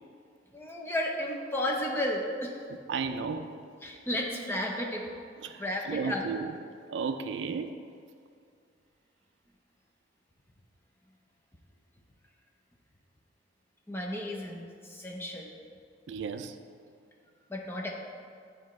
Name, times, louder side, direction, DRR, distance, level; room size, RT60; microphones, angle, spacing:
voice 1, 0.5-2.6 3.8-5.1 5.6-6.3 13.9-15.5 17.5-17.9, left 1 dB, 10° left, -1 dB, 0.7 m, -33 dB
voice 2, 2.9-3.6 5.4-6.6 6.9-7.8 16.1-16.6, right 5 dB, 75° right, 8 dB, 0.4 m, -34 dB
10.5 x 4.2 x 3.1 m, 2.3 s
head